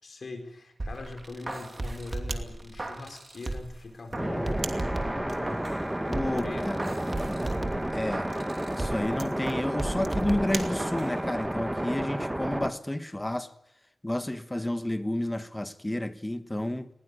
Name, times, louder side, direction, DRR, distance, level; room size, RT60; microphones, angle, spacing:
voice 1, 0.0-4.7 5.0-5.7 6.1-6.7, left 3 dB, 65° left, 4.4 m, -41 dB
sound 1, 0.8-3.8 4.1-5.8 6.1-9.1 9.4-11.1 11.4-11.5, right 2 dB, 35° right, 2.9 m, -36 dB
sound 2, 2.2-11.3, right 5 dB, 90° right, 2.0 m, -44 dB
sound 3, 4.2-12.7, right 1 dB, 10° right, 1.2 m, -31 dB
voice 2, 6.1-6.9 7.9-8.3 8.7-13.5 14.0-16.9, left 1 dB, 15° left, 1.2 m, -31 dB
20.0 x 17.5 x 9.8 m
wide cardioid pair, 105°, 0 cm